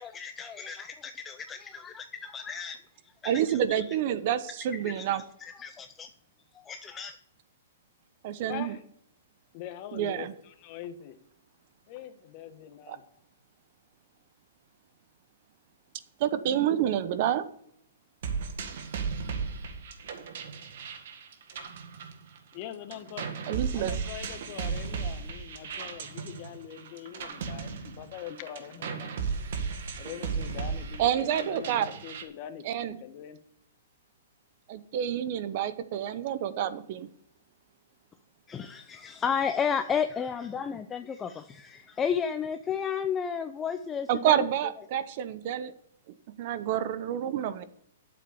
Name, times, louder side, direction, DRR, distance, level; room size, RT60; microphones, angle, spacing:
voice 1, 0.0-2.8 3.2-3.4 3.7-3.8 5.0-5.1 5.4-6.1 6.5-7.2 38.5-44.5, left 7 dB, 15° left, 9 dB, 0.5 m, -32 dB
voice 2, 3.2-5.2 8.2-8.7 9.9-10.3 12.9-13.0 16.2-17.5 23.5-23.9 31.0-31.9 32.6-33.0 34.7-37.1 44.1-45.7 46.4-47.6, right 10 dB, 45° right, 13 dB, 0.9 m, -28 dB
voice 3, 8.5-8.8 9.5-11.2 11.9-13.0 22.5-23.3 23.7-29.2 30.0-32.6 33.0-33.4, left 10 dB, 40° left, 10 dB, 1.2 m, -43 dB
sound 1, 18.2-22.6 22.9-32.2, right 5 dB, 60° right, 1.8 m, -35 dB
8.7 x 7.5 x 6.9 m, 0.69 s
hypercardioid pair, 150°, 0 cm